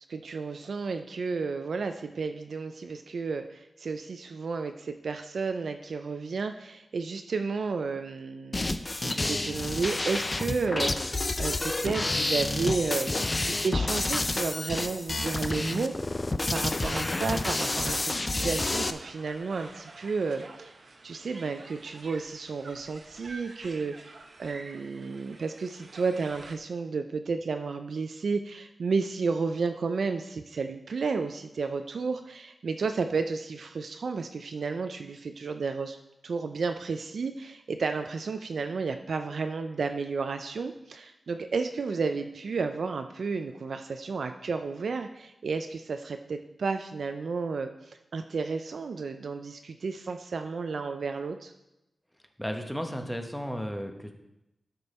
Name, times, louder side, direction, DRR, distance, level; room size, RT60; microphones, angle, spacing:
voice 1, 0.1-20.8 21.0-36.0 36.2-51.5, right 4 dB, 75° right, 7 dB, 0.4 m, -32 dB
sound 1, 8.5-18.9, left 2 dB, 25° left, 0.4 m, -29 dB
sound 2, 17.8-26.6, right 3 dB, 55° right, 0.8 m, -49 dB
voice 2, 52.4-54.1, equal, 5° left, 5 dB, 0.9 m, -34 dB
12.0 x 5.3 x 4.2 m, 0.89 s
wide cardioid pair, 120°, 0 cm